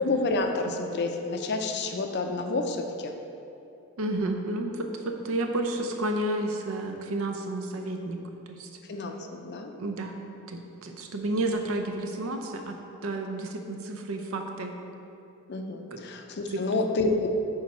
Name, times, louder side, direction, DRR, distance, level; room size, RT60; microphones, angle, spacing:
voice 1, 0.0-3.1 8.9-9.7 15.5-17.4, left 2 dB, 50° left, 5 dB, 0.5 m, -29 dB
voice 2, 4.0-8.2 8.5-8.7 9.8-10.2 10.5-12.8 13.0-14.7 15.9-16.0 16.5-16.6, right 2 dB, 65° right, 4 dB, 0.6 m, -31 dB
6.5 x 4.6 x 4.2 m, 2.7 s
head